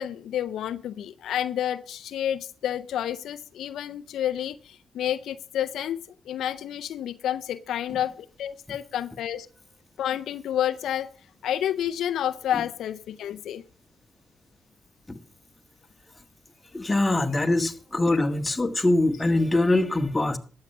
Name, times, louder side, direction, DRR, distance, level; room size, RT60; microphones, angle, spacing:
voice 1, 0.0-6.0 6.3-9.5 10.0-11.1 11.4-13.6 18.1-18.2, left 10 dB, 85° left, 0.5 m, -30 dB
voice 2, 16.7-20.4, left 2 dB, 20° left, 1.5 m, -23 dB
12.5 x 7.8 x 5.5 m
cardioid pair, 60°, 0 cm